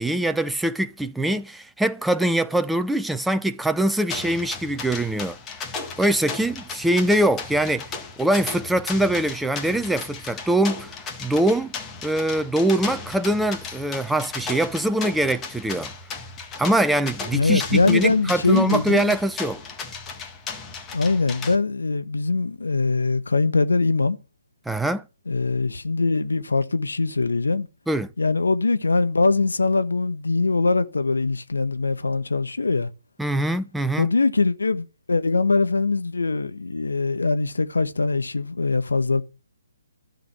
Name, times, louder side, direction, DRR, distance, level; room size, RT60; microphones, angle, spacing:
voice 1, 0.0-5.4 6.0-10.9 11.2-11.7 12.0-15.9 16.6-19.6 24.7-25.0 27.9-28.1 33.2-34.1, right 1 dB, 5° right, 0.7 m, -23 dB
sound 1, 4.1-21.6, left 4 dB, 15° left, 1.8 m, -36 dB
voice 2, 17.3-19.1 20.9-24.2 25.3-27.7 28.2-32.9 34.0-39.2, left 3 dB, 80° left, 1.3 m, -22 dB
13.0 x 6.7 x 7.9 m
figure-of-eight pair, 140°, 0 cm